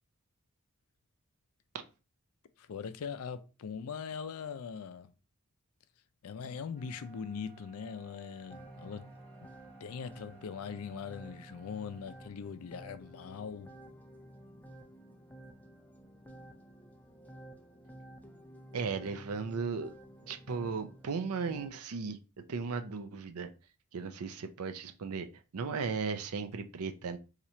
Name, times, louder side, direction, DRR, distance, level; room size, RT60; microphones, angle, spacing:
voice 1, 2.6-5.1 6.2-9.1 9.4-9.5 9.8-13.7, left 6 dB, 80° left, 0.4 m, -41 dB
sound 1, 6.7-12.3, right 8 dB, 15° right, 1.2 m, -60 dB
sound 2, 8.5-21.7, right 1 dB, 5° left, 0.4 m, -52 dB
voice 2, 18.7-19.9 20.3-22.2 22.5-23.5 23.9-25.3 25.5-27.2, right 5 dB, 90° right, 0.5 m, -36 dB
2.9 x 2.4 x 4.1 m
head